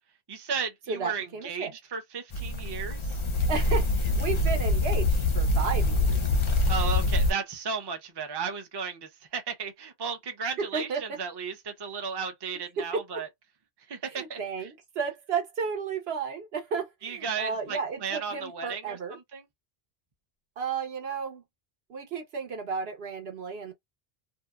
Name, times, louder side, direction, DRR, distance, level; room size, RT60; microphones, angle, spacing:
voice 1, 0.3-3.2 6.7-13.3 13.9-14.7 17.0-19.4, right 5 dB, 30° right, 0.5 m, -35 dB
voice 2, 0.9-1.7 3.5-6.3 10.6-11.2 12.8-13.2 14.1-19.2 20.6-21.4 21.9-23.7, right 5 dB, 70° right, 1.1 m, -33 dB
sound 1, 2.3-7.3, left 2 dB, 40° left, 0.4 m, -25 dB
2.7 x 2.2 x 2.3 m
omnidirectional pair, 1.1 m